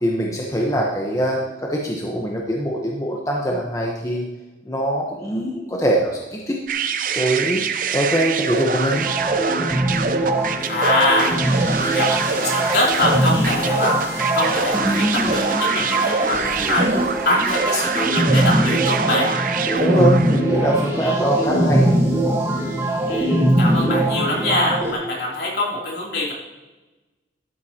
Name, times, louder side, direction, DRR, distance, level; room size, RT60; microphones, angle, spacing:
voice 1, 0.0-4.3 4.6-6.6 7.1-9.0 19.8-22.0, right 1 dB, 20° left, -2 dB, 1.0 m, -22 dB
sound 1, 6.7-20.5, right 5 dB, 45° right, 0.6 m, -25 dB
sound 2, 8.9-24.9, right 1 dB, 15° right, 1.5 m, -21 dB
voice 2, 10.7-11.4 11.8-19.3 21.0-21.5 23.1-26.3, left 1 dB, 65° left, -3 dB, 3.1 m, -24 dB
12.5 x 9.4 x 2.9 m, 1.2 s
head